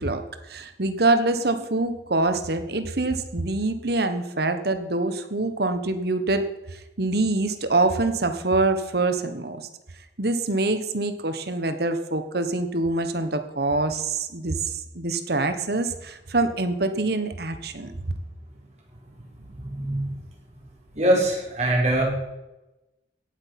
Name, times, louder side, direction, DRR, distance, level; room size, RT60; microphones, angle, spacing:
voice 1, 0.0-6.4 6.7-9.7 10.2-17.9, right 2 dB, 55° right, 9 dB, 1.2 m, -25 dB
voice 2, 19.4-20.1 20.9-22.1, right 1 dB, 40° right, -3 dB, 5.0 m, -23 dB
17.0 x 8.1 x 5.9 m, 0.99 s
head